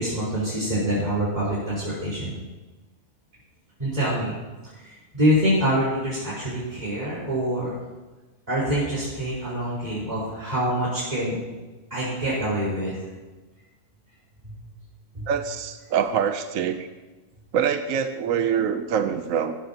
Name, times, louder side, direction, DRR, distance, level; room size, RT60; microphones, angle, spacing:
voice 1, 0.0-2.3 3.8-4.3 4.7-7.7 8.5-11.4 11.9-12.9 14.4-14.5 15.1-15.3, equal, 30° right, -11 dB, 4.7 m, -25 dB
voice 2, 15.3-16.8 17.5-19.6, right 8 dB, 80° right, 8 dB, 1.2 m, -24 dB
16.0 x 13.0 x 2.9 m, 1.2 s
omnidirectional pair, 1.4 m